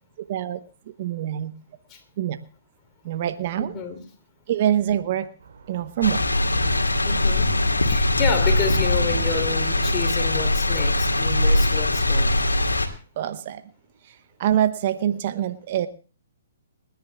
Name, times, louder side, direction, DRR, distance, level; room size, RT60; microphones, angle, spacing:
voice 1, 0.2-0.6 1.0-1.5 2.2-2.4 3.0-3.7 4.5-5.3 5.7-6.4 13.2-13.6 14.4-15.9, right 11 dB, 45° right, 11 dB, 1.0 m, -24 dB
voice 2, 3.6-4.0 7.0-7.6 7.9-12.4, left 6 dB, 25° left, 5 dB, 3.1 m, -30 dB
sound 1, 5.4-11.9, right 5 dB, 60° right, 3.0 m, -37 dB
sound 2, 6.0-12.9, left 2 dB, 90° left, 2.1 m, -21 dB
30.0 x 10.5 x 2.3 m, 0.37 s
figure-of-eight pair, 130°, 0 cm